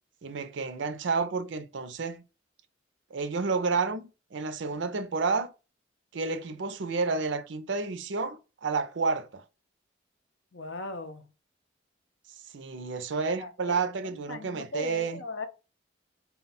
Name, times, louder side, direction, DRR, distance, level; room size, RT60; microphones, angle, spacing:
voice 1, 0.2-2.2 3.1-5.5 6.1-9.4 12.5-15.2, right 4 dB, 70° right, 0.5 m, -30 dB
voice 2, 10.5-11.2 13.4-13.7 14.2-15.5, left 2 dB, 70° left, 0.6 m, -38 dB
4.0 x 2.3 x 4.0 m
head